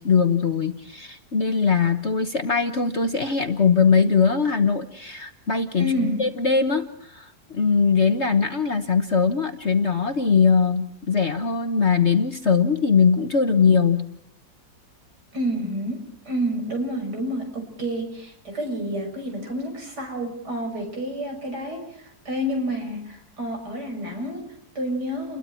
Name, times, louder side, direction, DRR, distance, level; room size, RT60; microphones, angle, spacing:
voice 1, 0.0-14.0, left 5 dB, 40° left, 7 dB, 1.3 m, -21 dB
voice 2, 5.8-6.2 15.3-25.4, equal, 60° right, 2 dB, 6.7 m, -29 dB
30.0 x 22.0 x 4.5 m, 0.73 s
omnidirectional pair, 2.0 m